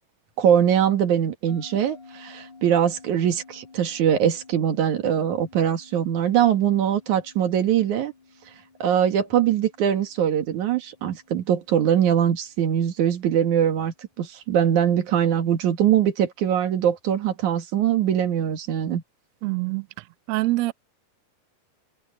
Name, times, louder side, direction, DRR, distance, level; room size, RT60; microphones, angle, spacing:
voice 1, 0.4-8.1 8.8-19.0, right 9 dB, 65° right, 3.1 m, -22 dB
sound 1, 1.5-14.2, left 4 dB, 10° right, 4.4 m, -52 dB
voice 2, 19.4-19.9 20.3-20.7, right 20 dB, 85° right, 1.5 m, -24 dB
omnidirectional pair, 3.9 m